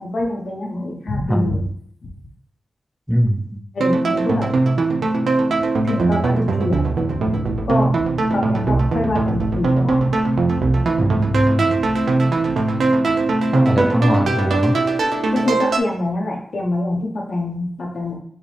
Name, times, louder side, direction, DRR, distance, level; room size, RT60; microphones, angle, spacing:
voice 1, 0.0-1.7 2.0-2.1 3.7-4.5 5.8-6.9 7.7-8.0 8.3-10.1 15.3-18.2, left 2 dB, 80° left, 0 dB, 1.0 m, -24 dB
voice 2, 1.3-1.6 3.1-3.6 11.0-11.7 13.5-14.8, equal, ahead, 2 dB, 0.5 m, -20 dB
sound 1, 3.8-15.8, right 2 dB, 85° right, 0.5 m, -19 dB
4.7 x 2.8 x 3.3 m, 0.65 s
wide cardioid pair, 75°, 0 cm